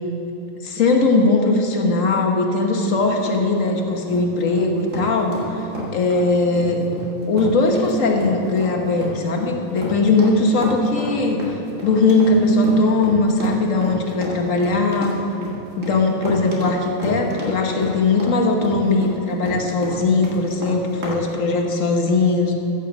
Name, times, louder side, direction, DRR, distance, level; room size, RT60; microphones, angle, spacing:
voice 1, 0.6-5.7 5.9-6.9 7.3-11.4 11.8-15.1 15.8-22.5, left 3 dB, 70° left, 2 dB, 1.6 m, -19 dB
sound 1, 2.8-21.2, equal, 65° right, 2.3 m, -31 dB
14.5 x 6.3 x 7.1 m, 3.0 s
omnidirectional pair, 1.4 m